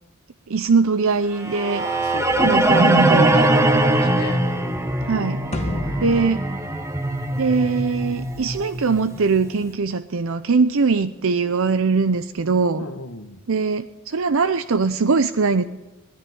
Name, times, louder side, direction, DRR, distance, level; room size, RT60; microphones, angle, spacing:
voice 1, 0.5-1.9 2.4-3.4 5.0-5.4 6.0-6.4 7.4-12.8 13.5-15.6, right 4 dB, 65° right, 12 dB, 0.6 m, -21 dB
sound 1, 1.4-9.4, right 1 dB, 15° right, 1.2 m, -21 dB
voice 2, 1.8-4.5 5.5-5.9 12.8-13.4, left 3 dB, 80° left, 7 dB, 1.6 m, -32 dB
sound 2, 5.5-8.0, left 1 dB, 30° left, 1.5 m, -31 dB
19.5 x 14.5 x 9.5 m, 1.1 s
head